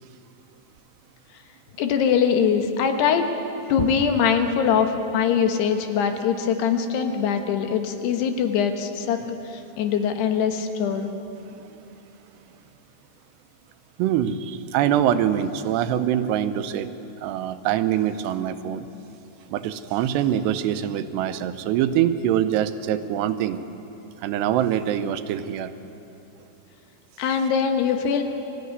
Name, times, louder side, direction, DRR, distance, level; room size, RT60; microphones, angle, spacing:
voice 1, 1.8-3.3 3.7-9.2 9.8-11.1 27.2-28.2, left 7 dB, 80° left, 5 dB, 3.4 m, -22 dB
voice 2, 14.0-16.9 17.2-18.9 19.5-23.6 24.2-25.7, right 10 dB, 85° right, 10 dB, 2.9 m, -24 dB
23.0 x 14.5 x 9.5 m, 3.0 s
omnidirectional pair, 4.7 m